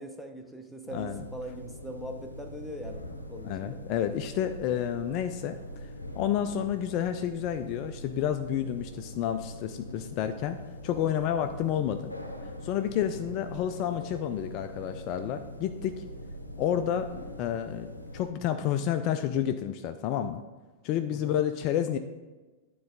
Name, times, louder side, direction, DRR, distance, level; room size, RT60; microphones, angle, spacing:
voice 1, 0.0-3.8 13.3-13.4 21.1-21.4, equal, ahead, 4 dB, 0.7 m, -41 dB
sound 1, 0.9-18.3, left 1 dB, 85° left, 0.6 m, -43 dB
voice 2, 3.5-5.9 6.1-10.6 10.8-12.1 12.4-16.0 16.6-17.1 17.4-20.4 20.8-22.0, left 10 dB, 40° left, 9 dB, 0.3 m, -30 dB
9.5 x 3.9 x 3.8 m, 1.2 s
figure-of-eight pair, 95°, 0 cm